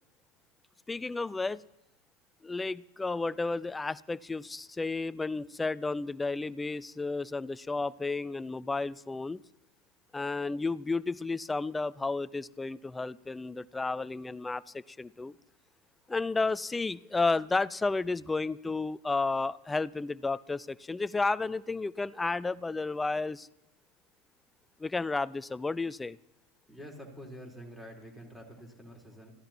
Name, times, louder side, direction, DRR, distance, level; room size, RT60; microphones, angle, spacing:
voice 1, 0.9-1.6 2.4-9.4 10.1-15.3 16.1-23.5 24.8-26.2, left 3 dB, 15° left, 19 dB, 0.5 m, -32 dB
voice 2, 26.7-29.3, equal, 5° right, 0 dB, 4.1 m, -47 dB
26.0 x 15.5 x 3.0 m, 0.90 s
hypercardioid pair, 85°, 0 cm